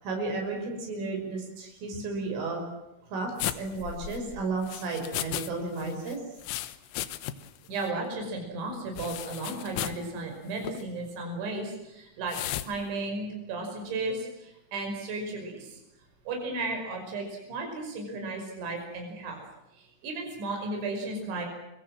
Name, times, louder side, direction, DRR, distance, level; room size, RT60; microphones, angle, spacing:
voice 1, 0.0-2.6 3.1-6.2, right 3 dB, 90° right, 2 dB, 8.3 m, -33 dB
sound 1, 3.4-5.5 5.8-7.6 7.8-7.9 9.0-10.1 10.6-10.8 12.3-12.7, left 14 dB, 90° left, 3.7 m, -35 dB
voice 2, 7.7-15.8 16.3-19.4 19.7-21.5, right 2 dB, 70° right, 2 dB, 7.8 m, -34 dB
29.5 x 23.5 x 7.7 m, 0.90 s
omnidirectional pair, 5.5 m